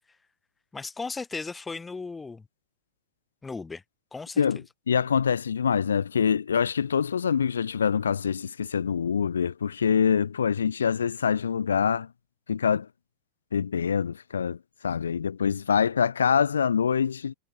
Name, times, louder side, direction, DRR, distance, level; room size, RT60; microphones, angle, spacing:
voice 1, 0.7-2.5 3.4-3.8 4.1-4.6, left 4 dB, 10° left, 3.1 m, -36 dB
voice 2, 4.9-12.1 12.5-12.9 13.5-14.6 14.8-17.3, left 7 dB, 70° left, 1.0 m, -25 dB
figure-of-eight pair, 90°, 0 cm